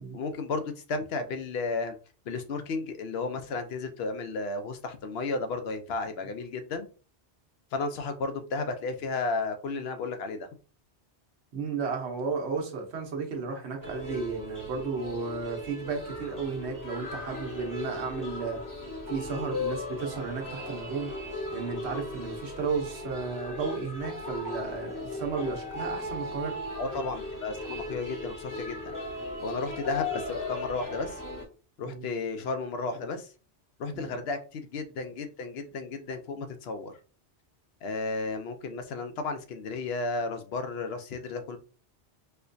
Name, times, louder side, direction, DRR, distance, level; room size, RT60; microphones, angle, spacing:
voice 1, 0.1-1.9 2.3-6.9 7.7-10.5 26.8-29.0 29.4-31.2 31.8-33.3 33.8-36.9 37.8-41.6, left 3 dB, 70° left, 7 dB, 0.8 m, -33 dB
voice 2, 11.5-18.6 19.1-21.1 21.5-26.6 31.8-32.1 33.9-34.1, right 5 dB, 70° right, 3 dB, 1.1 m, -33 dB
sound 1, 13.8-31.4, left 2 dB, 20° left, 0.9 m, -37 dB
4.3 x 2.2 x 2.5 m, 0.36 s
omnidirectional pair, 1.2 m